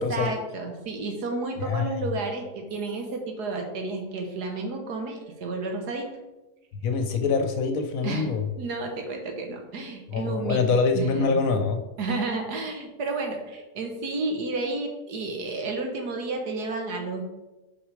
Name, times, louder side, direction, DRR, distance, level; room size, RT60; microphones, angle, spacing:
voice 1, 0.0-6.2 8.0-8.3 8.6-10.6 11.0-11.4 12.0-17.2, right 3 dB, 85° right, 3 dB, 1.7 m, -31 dB
voice 2, 1.6-1.9 6.8-8.4 10.1-11.8, left 4 dB, 65° left, 6 dB, 1.1 m, -25 dB
6.0 x 4.8 x 4.9 m, 1.0 s
omnidirectional pair, 1.7 m